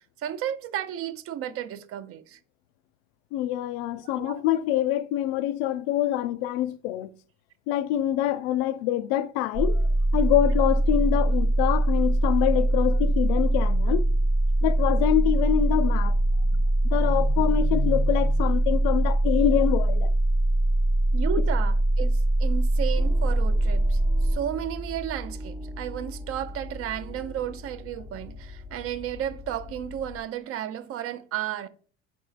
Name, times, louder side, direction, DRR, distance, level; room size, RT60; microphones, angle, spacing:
voice 1, 0.2-2.4 4.0-4.4 21.1-31.7, right 11 dB, 45° right, 0.5 m, -33 dB
voice 2, 3.3-7.1 7.7-9.8 10.1-14.0 14.6-16.2 16.5-20.1, left 12 dB, 70° left, 0.4 m, -25 dB
sound 1, 9.5-24.3, right 1 dB, 70° right, 0.9 m, -22 dB
sound 2, 23.0-30.2, left 1 dB, 5° right, 0.9 m, -39 dB
4.4 x 4.2 x 2.4 m
hypercardioid pair, 80°, 31 cm